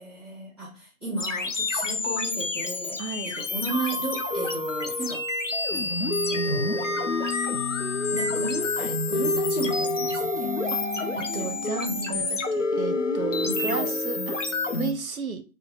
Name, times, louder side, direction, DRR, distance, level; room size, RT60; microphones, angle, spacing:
voice 1, 0.0-5.2 5.7-6.0 6.3-7.1 8.1-10.6 11.0-12.2 13.4-13.9, right 2 dB, 20° left, 1.2 m, -35 dB
sound 1, 1.2-14.9, left 3 dB, 55° left, 0.5 m, -28 dB
voice 2, 3.0-3.3 10.7-10.8 11.1-14.4 14.7-15.4, right 5 dB, 70° right, 0.5 m, -33 dB
2.4 x 2.1 x 3.8 m
figure-of-eight pair, 170°, 44 cm